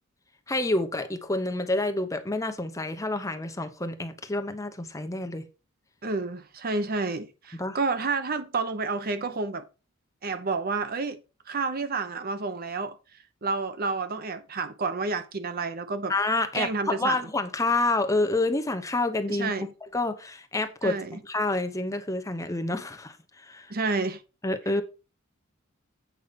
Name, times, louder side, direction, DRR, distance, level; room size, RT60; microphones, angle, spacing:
voice 1, 0.5-5.5 7.6-7.8 16.1-19.5 19.8-21.0 21.2-23.7 24.4-24.8, left 2 dB, 15° left, 0.9 m, -28 dB
voice 2, 6.0-9.7 10.2-11.2 11.5-13.0 13.4-16.1 16.5-17.2 19.3-19.7 20.8-21.2 23.7-24.2, right 4 dB, 45° right, 0.8 m, -30 dB
8.4 x 5.5 x 5.2 m
head